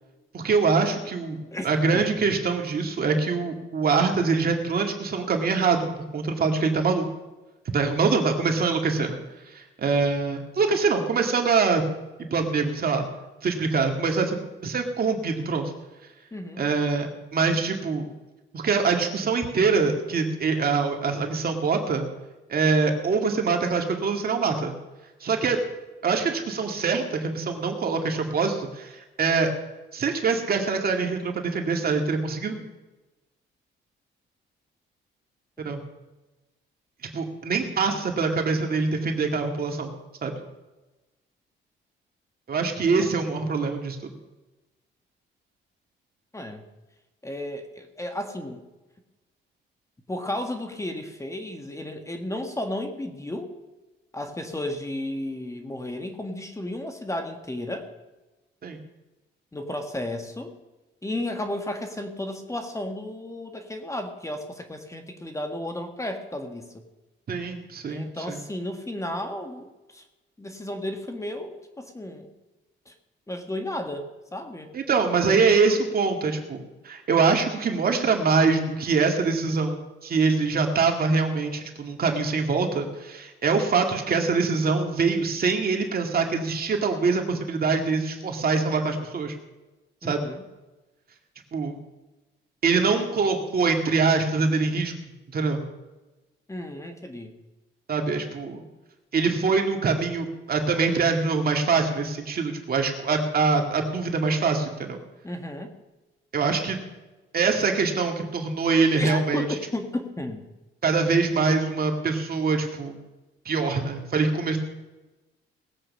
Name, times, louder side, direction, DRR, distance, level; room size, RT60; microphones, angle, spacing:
voice 1, 0.3-1.4 1.6-7.1 7.7-9.2 9.5-11.8 12.3-13.0 13.4-15.7 16.6-18.1 18.5-22.1 22.5-24.8 25.2-25.6 26.0-29.5 29.9-32.6 35.6-35.8 37.1-39.9 40.2-40.3 42.5-44.0 58.6-58.8 67.3-68.4 74.7-89.3 90.0-90.2 91.5-91.8 92.6-94.9 95.3-95.6 97.9-98.6 99.1-105.0 106.3-106.8 107.3-109.5 110.8-113.0 113.5-114.6, right 4 dB, 50° right, 3 dB, 2.2 m, -24 dB
voice 2, 1.5-2.2 16.3-16.7 43.0-43.1 46.3-46.6 47.2-48.6 50.1-53.5 54.1-57.9 59.5-60.5 61.0-66.8 67.9-70.0 70.4-72.3 72.9-73.0 73.3-74.7 90.0-90.4 96.5-97.3 105.2-105.7 108.9-110.4, left 1 dB, 15° left, 5 dB, 1.6 m, -33 dB
19.5 x 8.0 x 5.5 m, 1.1 s
cardioid pair, 90°, 20 cm